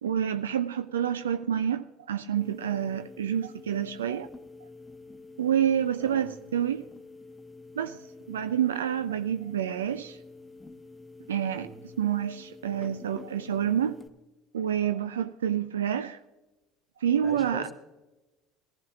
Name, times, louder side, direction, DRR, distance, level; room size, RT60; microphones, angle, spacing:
voice 1, 0.0-4.3 5.4-6.8 7.8-10.2 11.3-11.7 12.0-14.0 14.5-16.2 17.0-17.7, right 9 dB, 80° right, 0.3 m, -28 dB
sound 1, 2.4-14.1, left 3 dB, 10° left, 1.0 m, -48 dB
voice 2, 6.0-6.3 11.5-11.8 17.2-17.7, right 1 dB, 20° right, 2.3 m, -42 dB
19.0 x 15.0 x 2.4 m
figure-of-eight pair, 65°, 0 cm